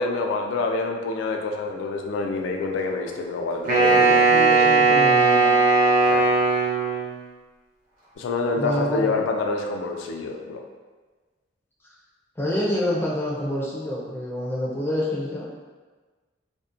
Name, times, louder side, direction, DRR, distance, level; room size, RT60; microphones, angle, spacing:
voice 1, 0.0-4.3 6.0-6.3 8.2-10.6, left 3 dB, 85° left, 3 dB, 0.3 m, -27 dB
Wind instrument woodwind instrument, 3.6-7.1, right 3 dB, 45° right, 0.6 m, -18 dB
voice 2, 3.9-5.5 8.6-9.1 12.4-15.5, left 1 dB, 10° left, -6 dB, 0.4 m, -27 dB
2.4 x 2.0 x 2.5 m, 1.3 s
head